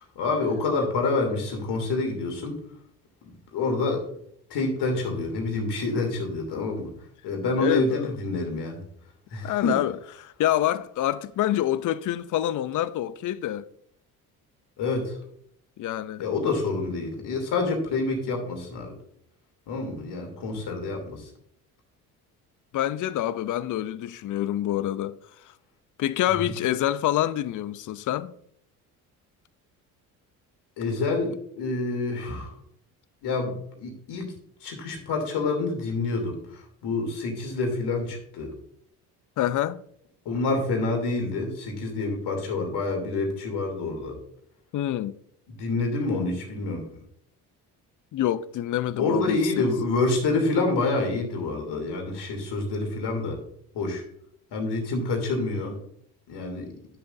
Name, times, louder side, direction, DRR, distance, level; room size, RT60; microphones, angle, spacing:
voice 1, 0.1-2.6 3.5-4.1 4.5-6.9 7.2-8.8 9.3-9.8 14.8-15.2 16.2-18.9 19.7-21.3 26.4-26.5 30.8-32.5 33.2-34.3 34.6-38.5 40.2-44.2 45.6-46.9 49.0-53.4 53.7-54.0 54.5-55.7 56.3-56.7, left 3 dB, 60° left, 3.2 m, -27 dB
voice 2, 7.6-8.1 9.4-13.7 15.8-16.3 22.7-25.2 26.0-28.4 39.4-39.8 44.7-45.2 48.1-49.6, left 12 dB, 45° left, 0.6 m, -27 dB
11.5 x 7.0 x 2.7 m
hypercardioid pair, 60°, 45 cm